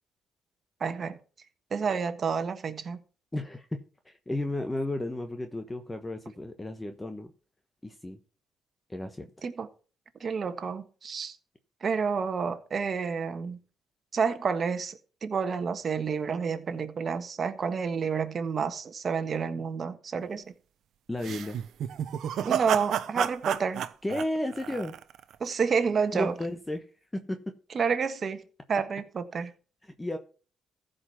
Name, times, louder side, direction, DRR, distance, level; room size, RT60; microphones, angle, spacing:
voice 1, 0.8-1.2 1.7-3.0 9.4-9.7 10.2-11.4 11.8-13.6 14.1-20.4 22.4-23.9 25.4-26.3 27.7-28.4 28.7-29.5, right 5 dB, 45° right, 1.5 m, -29 dB
voice 2, 3.3-7.3 7.8-8.2 8.9-9.3 21.1-21.6 24.0-25.0 26.1-27.6 29.8-30.2, left 1 dB, 15° left, 1.1 m, -33 dB
sound 1, 21.2-25.3, right 10 dB, 75° right, 0.8 m, -31 dB
14.5 x 5.2 x 5.9 m
cardioid pair, 90°, 0 cm